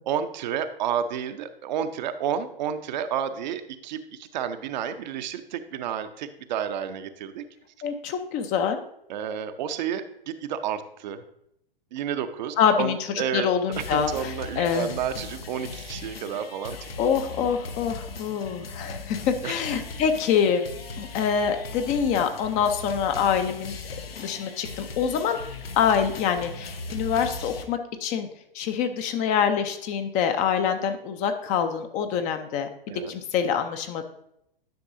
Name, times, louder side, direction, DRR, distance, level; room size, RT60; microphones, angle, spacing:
voice 1, 0.0-7.4 9.1-11.2 11.9-13.5 13.8-16.8 19.4-19.6 32.9-33.1, right 8 dB, 50° right, 9 dB, 0.6 m, -31 dB
voice 2, 7.8-8.8 12.6-13.0 13.3-14.9 17.0-20.7 21.0-23.7 24.2-25.4 25.8-28.3 28.5-32.7 33.1-34.0, left 7 dB, 25° left, 7 dB, 0.5 m, -25 dB
sound 1, 13.7-27.6, left 3 dB, 80° left, 0.9 m, -38 dB
10.5 x 6.0 x 2.6 m, 0.77 s
figure-of-eight pair, 110°, 30 cm